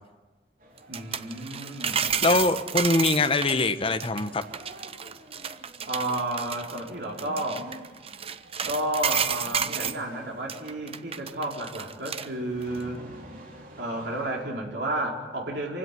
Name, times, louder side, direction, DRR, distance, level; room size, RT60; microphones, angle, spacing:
sound 1, 0.6-15.1, right 1 dB, 50° right, 3.9 m, -50 dB
sound 2, 0.8-10.0 10.5-12.3 12.6-12.8, right 7 dB, 35° right, 0.7 m, -31 dB
voice 1, 0.9-2.4 5.9-7.7 8.6-13.1 13.8-15.8, right 1 dB, 70° right, -1 dB, 4.8 m, -32 dB
voice 2, 2.2-4.4, left 2 dB, 30° left, 9 dB, 1.0 m, -23 dB
26.5 x 16.5 x 9.3 m, 1.3 s
head